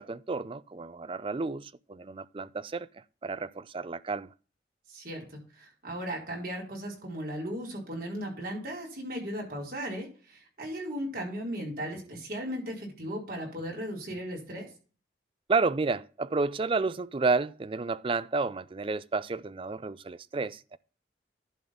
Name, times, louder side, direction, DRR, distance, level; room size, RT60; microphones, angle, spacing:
voice 1, 0.0-4.3 11.9-12.0 15.5-20.8, right 4 dB, 30° right, 0.4 m, -31 dB
voice 2, 4.9-14.7, equal, 55° right, 4.5 m, -36 dB
11.0 x 4.0 x 7.1 m
head